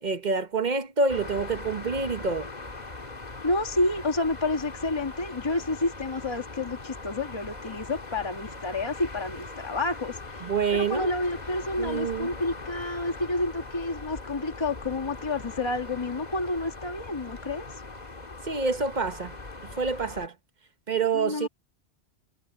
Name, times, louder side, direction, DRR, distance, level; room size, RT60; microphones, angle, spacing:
voice 1, 0.0-2.5 10.4-11.1 11.8-12.4 18.4-19.3 19.8-20.3 20.9-21.5, right 4 dB, 45° right, 1.1 m, -27 dB
sound 1, 1.1-20.3, left 3 dB, 40° left, 1.9 m, -41 dB
voice 2, 3.4-17.7 21.1-21.5, left 2 dB, 25° left, 1.5 m, -29 dB
omnidirectional pair, 1.2 m